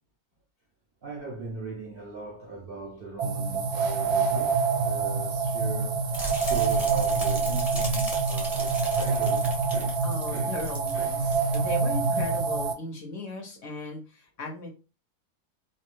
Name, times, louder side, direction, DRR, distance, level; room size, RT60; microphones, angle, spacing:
voice 1, 1.0-10.5 10.9-11.1, right 3 dB, 60° right, 0.6 m, -40 dB
sound 1, 3.2-12.7, right 5 dB, 75° right, 1.1 m, -26 dB
sound 2, 6.1-10.9 11.2-11.6 12.0-12.2, equal, ahead, 0.6 m, -37 dB
voice 2, 10.0-14.7, left 2 dB, 60° left, 0.9 m, -36 dB
2.7 x 2.2 x 3.0 m
omnidirectional pair, 1.7 m